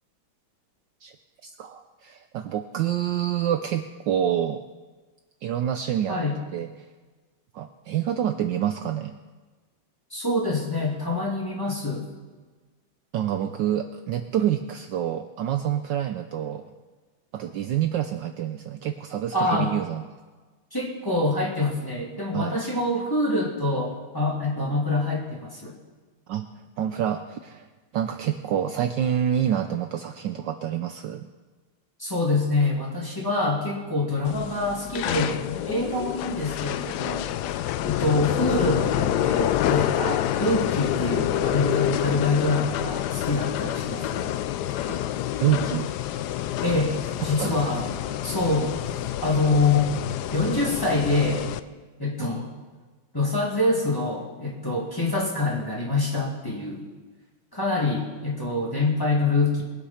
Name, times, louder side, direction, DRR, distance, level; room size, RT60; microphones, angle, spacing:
voice 1, 1.4-4.6 5.4-6.2 6.5-6.7 7.5-9.1 13.1-16.6 17.3-20.0 22.3-22.6 26.3-26.5 26.8-27.7 27.9-31.3 44.8-45.0 45.4-45.9 46.7-46.8 47.4-47.7, right 10 dB, 70° right, 7 dB, 1.2 m, -27 dB
voice 2, 6.1-6.4 10.1-12.1 19.3-19.7 20.7-25.8 32.0-37.3 37.8-44.3 46.6-47.9 48.2-49.9 50.3-51.5 52.0-52.5 53.1-56.9 57.5-59.6, left 2 dB, 10° left, -3 dB, 2.3 m, -25 dB
sound 1, 34.3-51.6, left 12 dB, 80° left, 0.9 m, -27 dB
21.5 x 8.2 x 5.7 m, 1.3 s
omnidirectional pair, 2.3 m